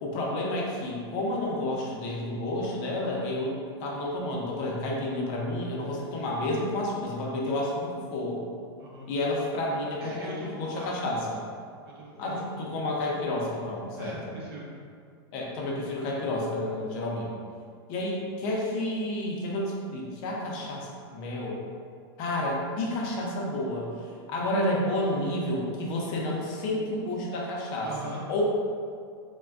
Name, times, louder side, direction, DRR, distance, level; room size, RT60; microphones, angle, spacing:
voice 1, 0.0-8.4 9.1-10.3 10.6-11.4 12.2-14.2 15.3-17.3 17.9-21.6 22.2-23.9 24.3-27.9 28.3-28.4, left 1 dB, 35° left, -2 dB, 0.5 m, -30 dB
voice 2, 8.8-9.1 10.0-11.1 11.9-12.4 14.0-14.7 27.8-28.2, right 1 dB, 65° right, -4 dB, 0.7 m, -41 dB
3.3 x 2.1 x 2.3 m, 2.2 s
supercardioid pair, 160°, 14 cm